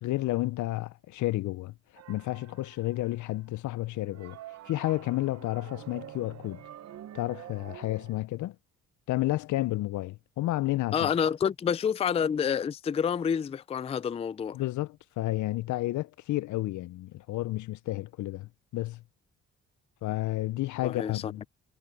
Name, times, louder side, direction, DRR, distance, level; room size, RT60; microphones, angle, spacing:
voice 1, 0.0-4.4 4.7-6.6 7.1-8.6 9.1-11.1 14.5-19.0 20.0-21.5, left 17 dB, 75° left, 0.5 m, -31 dB
sound 1, 2.0-3.3 3.9-8.2, right 11 dB, 60° right, 0.8 m, -47 dB
voice 2, 10.9-14.6 20.8-21.3, left 7 dB, 20° left, 0.3 m, -28 dB
cardioid pair, 90°, 30 cm